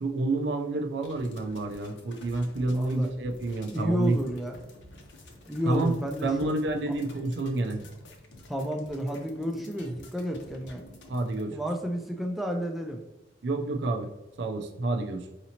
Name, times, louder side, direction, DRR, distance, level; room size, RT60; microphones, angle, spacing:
voice 1, 0.0-4.2 5.6-5.9 6.2-7.8 9.8-9.9 11.1-11.6 13.4-14.1 14.4-15.3, right 2 dB, 65° right, 4 dB, 0.5 m, -29 dB
sound 1, 1.0-11.4, left 1 dB, 80° left, 0.8 m, -50 dB
voice 2, 2.7-3.1 3.7-4.6 5.5-6.5 6.9-7.0 8.5-10.8 11.5-13.0, equal, ahead, 2 dB, 0.3 m, -31 dB
4.9 x 2.8 x 2.8 m, 1.0 s
head